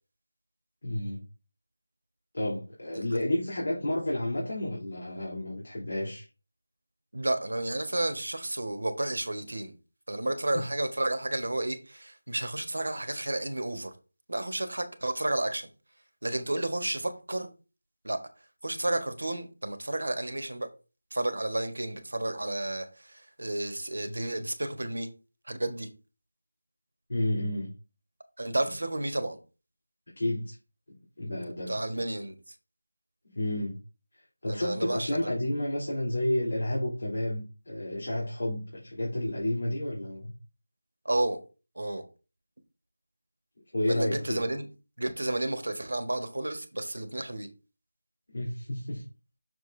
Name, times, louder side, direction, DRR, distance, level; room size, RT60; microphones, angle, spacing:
voice 1, 0.8-1.2 2.3-6.3 10.5-10.6 27.1-27.7 30.2-30.6 31.2-31.8 33.3-33.8 34.4-40.3 43.7-44.4 48.3-49.0, left 1 dB, 60° left, 3.4 m, -31 dB
voice 2, 7.1-9.7 10.1-13.9 14.3-15.7 16.2-17.5 18.0-18.2 18.6-20.7 21.1-25.1 25.5-25.9 28.4-29.4 31.7-32.3 34.5-35.3 41.0-41.4 41.7-42.0 43.9-44.7 45.0-47.5, right 1 dB, 70° right, 1.5 m, -31 dB
6.6 x 6.5 x 2.7 m
figure-of-eight pair, 175°, 0 cm